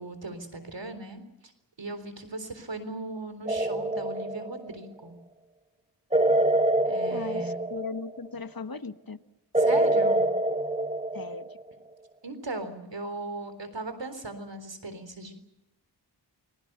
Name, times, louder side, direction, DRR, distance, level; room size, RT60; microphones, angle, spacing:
voice 1, 0.0-1.5 1.8-5.2 6.8-7.6 9.6-10.3 12.2-15.3, right 2 dB, 90° right, 10 dB, 3.9 m, -38 dB
sound 1, 3.5-4.8 6.1-8.3 9.5-11.7, right 1 dB, 15° right, 2.0 m, -25 dB
voice 2, 7.1-9.2 11.1-11.5, left 4 dB, 55° left, 10 dB, 1.5 m, -38 dB
29.0 x 22.0 x 6.8 m, 0.87 s
wide cardioid pair, 55°, 42 cm